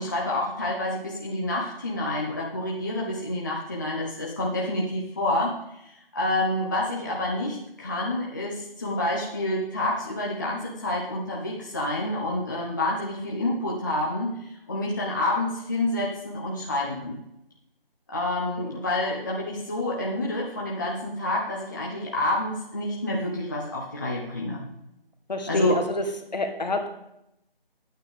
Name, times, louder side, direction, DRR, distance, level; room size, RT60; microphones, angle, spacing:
voice 1, 0.0-5.8 6.1-17.2 18.1-24.7 25.5-25.8, left 1 dB, 20° left, -3 dB, 0.9 m, -28 dB
voice 2, 25.3-26.0 26.3-26.9, left 2 dB, 45° left, 6 dB, 1.5 m, -27 dB
9.8 x 9.0 x 5.1 m, 0.81 s
figure-of-eight pair, 170°, 30 cm